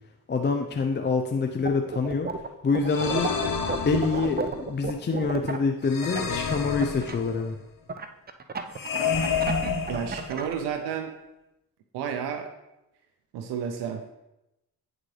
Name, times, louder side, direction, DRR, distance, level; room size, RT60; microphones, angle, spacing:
voice 1, 0.3-2.3 2.6-3.3 3.9-7.6, left 4 dB, 30° left, 4 dB, 0.5 m, -26 dB
sound 1, 1.6-2.5 2.7-7.1 7.9-10.5, right 5 dB, 25° right, 0.5 m, -32 dB
sound 2, 2.9-4.6 5.9-7.5 8.7-10.6, left 5 dB, 55° left, 0.9 m, -30 dB
voice 2, 9.9-11.1 11.9-12.5 13.3-14.0, right 7 dB, 90° right, 5 dB, 0.6 m, -31 dB
8.8 x 4.0 x 3.2 m, 0.92 s
supercardioid pair, 55°, 39 cm